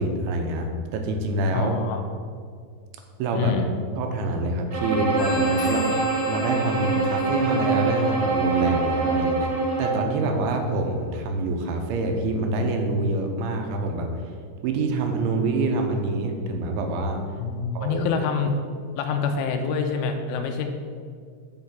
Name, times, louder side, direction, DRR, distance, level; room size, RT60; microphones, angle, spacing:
voice 1, 0.0-1.8 3.2-3.6 4.0-9.5 9.8-14.2 14.6-17.2 17.7-18.1, right 2 dB, 80° right, 4 dB, 3.1 m, -26 dB
voice 2, 1.5-2.0 3.3-3.7 17.4-18.5 19.0-20.7, left 5 dB, 85° left, 5 dB, 3.3 m, -26 dB
Bowed string instrument, 4.7-10.1, right 3 dB, 50° right, 2.6 m, -24 dB
Telephone, 5.2-10.5, left 6 dB, 55° left, 2.5 m, -39 dB
8.1 x 5.8 x 7.3 m, 2.1 s
omnidirectional pair, 5.5 m